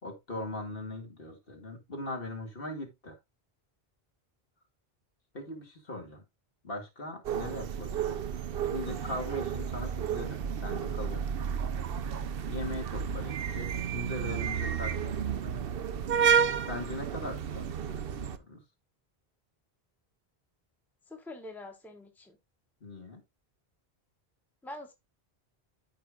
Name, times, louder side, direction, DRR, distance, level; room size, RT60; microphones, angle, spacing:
voice 1, 0.0-3.2 5.3-6.2 6.6-8.2 8.7-11.3 12.5-15.6 16.4-18.6 22.8-23.2, left 1 dB, 65° left, 2.3 m, -40 dB
sound 1, 7.2-18.4, right 7 dB, 70° right, 0.9 m, -31 dB
voice 2, 21.1-22.4 24.6-24.9, left 1 dB, ahead, 1.1 m, -44 dB
13.0 x 5.0 x 2.4 m
omnidirectional pair, 1.0 m